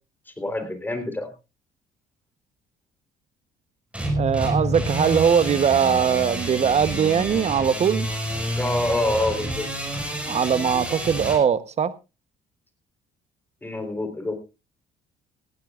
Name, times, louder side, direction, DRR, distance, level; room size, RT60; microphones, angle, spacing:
voice 1, 0.3-1.3 8.5-9.7 13.6-14.3, left 2 dB, 10° left, 3.9 m, -26 dB
sound 1, 3.9-11.4, right 1 dB, 5° right, 5.3 m, -28 dB
voice 2, 4.2-8.1 10.3-11.9, right 7 dB, 40° right, 1.0 m, -21 dB
18.0 x 15.5 x 2.5 m
cardioid pair, 110°, 17 cm